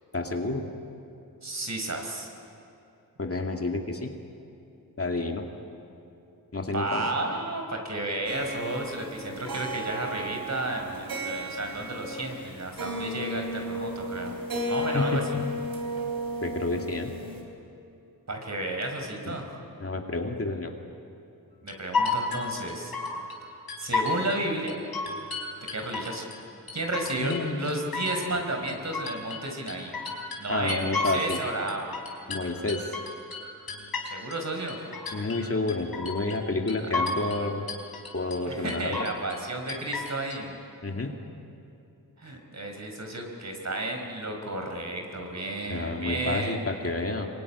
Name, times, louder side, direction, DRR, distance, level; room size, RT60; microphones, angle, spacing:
voice 1, 0.1-0.7 3.2-4.2 5.0-5.5 6.5-7.1 14.9-15.4 16.4-17.1 19.2-19.3 19.8-20.7 27.2-27.6 30.5-31.4 32.3-32.9 35.1-37.6 38.1-39.0 40.8-41.2 45.7-47.3, left 2 dB, 40° left, 3 dB, 2.4 m, -30 dB
voice 2, 1.4-2.3 6.7-14.3 14.7-15.2 18.3-19.5 21.6-22.9 23.8-24.7 25.7-26.2 26.7-29.9 30.4-31.9 34.1-34.8 38.5-40.5 42.2-46.6, right 2 dB, 45° right, 3 dB, 4.7 m, -32 dB
sound 1, 8.3-12.5 12.8-17.4, equal, 75° right, 4.3 m, -34 dB
sound 2, 21.7-23.4 23.7-24.4 24.7-26.4 26.7-27.4 27.7-31.4 31.7-34.4 34.7-35.4 35.7-36.4 36.7-37.4 37.7-38.4 38.7-39.4 39.7-40.4, left 3 dB, 75° left, 4.1 m, -32 dB
26.0 x 23.5 x 9.8 m, 2.7 s
wide cardioid pair, 95°, 37 cm